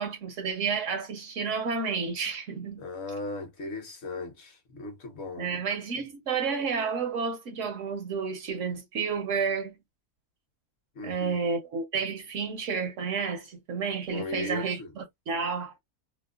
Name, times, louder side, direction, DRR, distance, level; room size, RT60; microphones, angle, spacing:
voice 1, 0.0-2.8 5.4-9.8 11.0-15.7, right 5 dB, 65° right, 0.9 m, -31 dB
voice 2, 2.8-5.6 11.0-11.4 14.1-14.9, left 2 dB, 50° left, 0.9 m, -37 dB
2.8 x 2.0 x 2.3 m
omnidirectional pair, 1.7 m